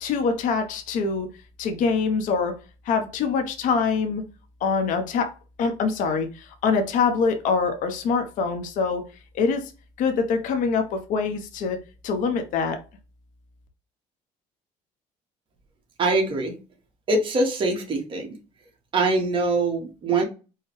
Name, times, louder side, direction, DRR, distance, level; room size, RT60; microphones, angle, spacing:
voice 1, 0.0-1.3 1.6-2.5 2.8-4.2 4.6-5.3 5.6-9.0 9.3-9.7 10.0-11.8 12.0-12.8, left 5 dB, 65° left, 6 dB, 0.8 m, -24 dB
voice 2, 16.0-16.6 17.1-18.4 18.9-20.2, right 3 dB, 35° right, 0 dB, 1.3 m, -23 dB
4.7 x 2.2 x 3.0 m, 0.31 s
cardioid pair, 110°, 15 cm